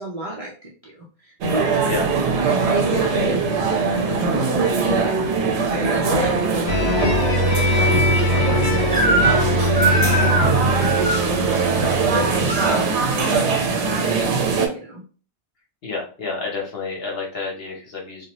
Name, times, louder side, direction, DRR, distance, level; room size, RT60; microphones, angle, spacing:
voice 1, 0.0-1.7 2.2-15.0, equal, 40° right, -4 dB, 0.5 m, -32 dB
sound 1, 1.4-14.7, right 4 dB, 75° right, 0.9 m, -21 dB
sound 2, 6.7-12.9, left 1 dB, 30° left, 0.9 m, -22 dB
Crying sobbing / Screech, 8.9-9.5 9.7-11.2 12.1-12.8, right 1 dB, 10° right, 0.8 m, -22 dB
voice 2, 15.8-18.2, left 4 dB, 60° left, -1 dB, 1.0 m, -29 dB
2.6 x 2.4 x 3.0 m, 0.38 s
omnidirectional pair, 1.2 m